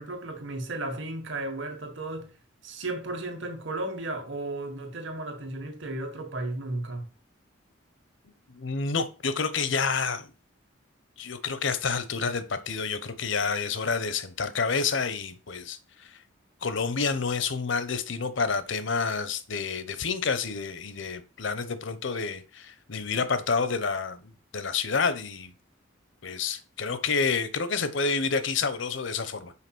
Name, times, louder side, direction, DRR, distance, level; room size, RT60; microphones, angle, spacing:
voice 1, 0.0-2.4 2.6-7.1, right 2 dB, 65° right, 1.7 m, -34 dB
voice 2, 8.5-10.3 11.2-16.2 16.6-25.5 26.2-29.5, left 5 dB, 65° left, 0.8 m, -29 dB
5.8 x 4.7 x 6.1 m
head